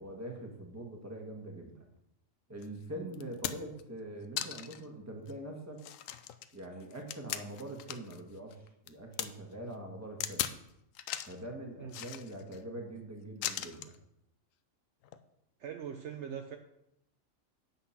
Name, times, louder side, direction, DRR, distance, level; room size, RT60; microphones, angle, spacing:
voice 1, 0.0-1.9 2.5-5.8 6.5-10.5 11.3-13.9, right 1 dB, 10° right, 1 dB, 1.4 m, -43 dB
sound 1, 2.6-2.7 3.1-3.8 4.4-4.8 5.3-5.4 5.8-8.2 8.5-9.3 10.2-10.6 11.0-11.4 11.9-12.6 13.4-14.0 15.0-15.2, left 11 dB, 80° left, 1.0 m, -38 dB
voice 2, 15.6-16.6, right 8 dB, 65° right, 5 dB, 0.9 m, -41 dB
8.6 x 5.9 x 5.7 m, 0.83 s
omnidirectional pair, 1.4 m